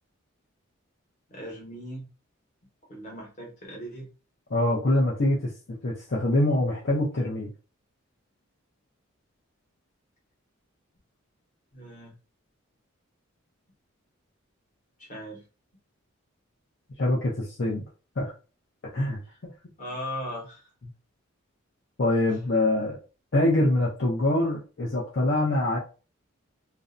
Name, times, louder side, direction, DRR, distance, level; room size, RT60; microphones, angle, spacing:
voice 1, 1.3-2.0 2.9-4.1 11.7-12.1 15.0-15.4 19.3-19.4 19.8-20.6, equal, 35° left, -2 dB, 1.0 m, -38 dB
voice 2, 4.5-5.5 5.8-7.5 17.0-17.8 18.2-18.3 18.9-19.2 22.0-23.0 23.3-25.8, left 1 dB, 55° left, -4 dB, 0.6 m, -24 dB
2.5 x 2.1 x 2.5 m, 0.33 s
head